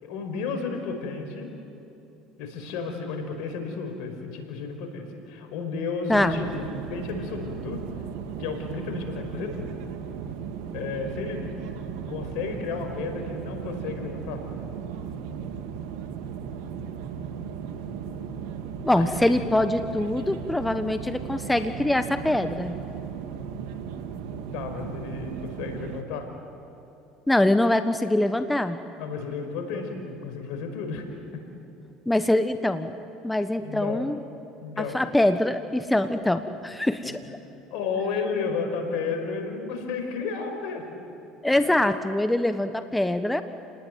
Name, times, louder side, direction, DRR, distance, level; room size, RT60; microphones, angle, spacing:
voice 1, 0.0-1.5 2.4-7.8 8.4-9.7 10.7-11.5 12.1-14.4 24.5-26.3 29.0-31.0 31.3-31.4 33.6-34.1 34.6-35.0 37.0-37.2 37.7-40.9, left 5 dB, 70° left, 5 dB, 5.1 m, -32 dB
voice 2, 6.1-6.4 18.8-22.7 27.3-28.8 32.1-32.9 33.2-34.2 34.8-37.2 41.4-43.4, left 1 dB, 10° left, 9 dB, 1.3 m, -23 dB
sound 1, 6.1-26.0, right 7 dB, 75° right, 2.1 m, -36 dB
29.5 x 19.5 x 9.4 m, 3.0 s
supercardioid pair, 85°, 0 cm